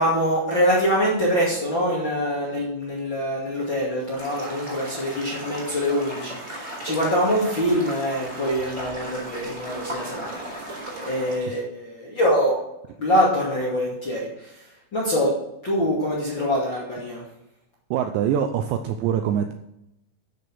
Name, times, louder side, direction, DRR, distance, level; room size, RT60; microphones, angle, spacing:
voice 1, 0.0-12.5 13.0-15.3 15.6-17.2, equal, 40° left, -5 dB, 1.8 m, -24 dB
sound 1, 4.2-11.4, right 1 dB, 15° right, 3.8 m, -36 dB
voice 2, 17.9-19.5, right 9 dB, 90° right, 8 dB, 2.5 m, -24 dB
12.5 x 6.9 x 6.1 m, 0.85 s
omnidirectional pair, 5.8 m